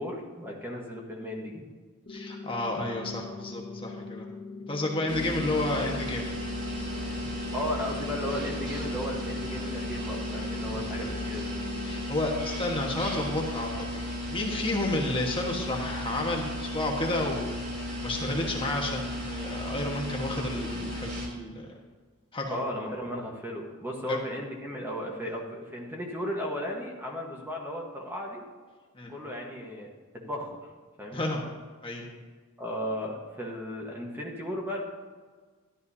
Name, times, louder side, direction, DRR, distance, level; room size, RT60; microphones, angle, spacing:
voice 1, 0.0-1.7 7.5-11.5 22.5-28.4 29.1-29.9 30.1-30.6 31.0-31.2 32.6-34.8, equal, 10° right, -1 dB, 1.3 m, -35 dB
sound 1, 2.1-12.1, left 3 dB, 40° left, 0.9 m, -42 dB
voice 2, 2.1-4.2 4.7-6.3 10.6-10.8 11.8-14.0 14.3-17.5 18.0-21.7 22.3-22.6 24.1-24.2 25.2-25.3 28.9-29.1 31.1-31.4 31.8-32.1, left 2 dB, 25° left, -1 dB, 1.4 m, -31 dB
sound 2, 5.1-21.3, left 1 dB, 55° right, 3.3 m, -35 dB
13.5 x 11.5 x 2.8 m, 1.5 s
head